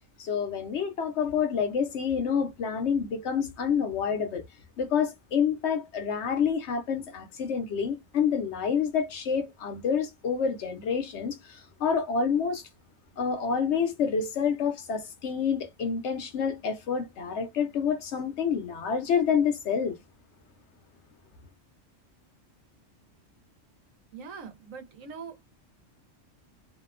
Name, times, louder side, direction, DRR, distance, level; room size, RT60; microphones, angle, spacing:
voice 1, 0.2-4.4 4.8-12.6 13.2-20.0, left 6 dB, 65° left, 0.9 m, -28 dB
voice 2, 24.1-25.6, right 5 dB, 90° right, 1.2 m, -43 dB
2.8 x 2.1 x 2.3 m
omnidirectional pair, 1.3 m